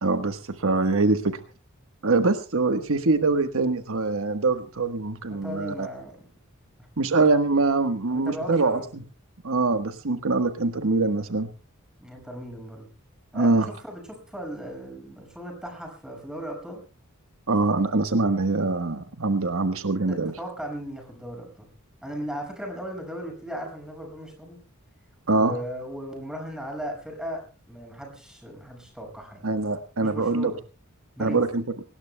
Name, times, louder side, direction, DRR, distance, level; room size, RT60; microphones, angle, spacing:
voice 1, 0.0-1.4 2.0-5.9 7.0-9.0 9.4-11.5 13.3-13.7 17.5-20.3 25.3-25.5 29.4-30.5 31.2-31.6, right 3 dB, 65° right, 8 dB, 1.3 m, -23 dB
voice 2, 5.3-6.2 8.1-8.9 12.0-12.9 13.3-14.0 14.3-16.8 20.1-21.7 22.0-24.6 25.3-29.5 30.0-30.6 31.2-31.4, equal, 5° right, 2 dB, 5.9 m, -37 dB
23.5 x 19.5 x 2.2 m, 0.34 s
head